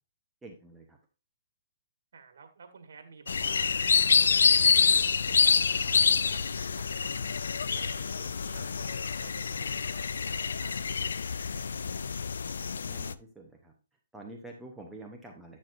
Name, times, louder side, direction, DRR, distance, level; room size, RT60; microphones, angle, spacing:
voice 1, 0.4-1.0 12.8-13.7 14.1-15.6, right 2 dB, 5° right, 1 dB, 0.8 m, -47 dB
voice 2, 2.1-3.8 4.2-7.3 7.7-11.2 11.5-12.0, right 5 dB, 70° right, 7 dB, 1.5 m, -52 dB
sound 1, 3.3-13.1, left 6 dB, 85° left, 0.3 m, -27 dB
9.0 x 6.3 x 2.6 m, 0.32 s
hypercardioid pair, 155°, 0 cm